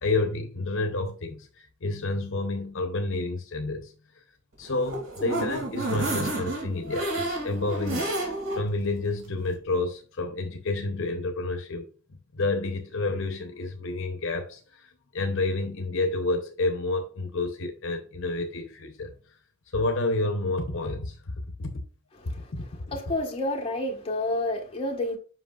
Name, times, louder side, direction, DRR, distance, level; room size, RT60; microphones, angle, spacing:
voice 1, 0.0-3.9 4.6-8.1 8.5-11.9 12.3-19.1 19.7-21.2 21.6-21.8 22.5-23.0, left 2 dB, 60° left, 0.8 m, -29 dB
sound 1, 4.6-8.6 9.0-9.1 9.4-9.5, right 2 dB, 65° right, 2.6 m, -30 dB
voice 2, 22.2-22.5 22.9-25.2, left 1 dB, 25° left, 1.3 m, -29 dB
7.6 x 5.7 x 2.4 m
head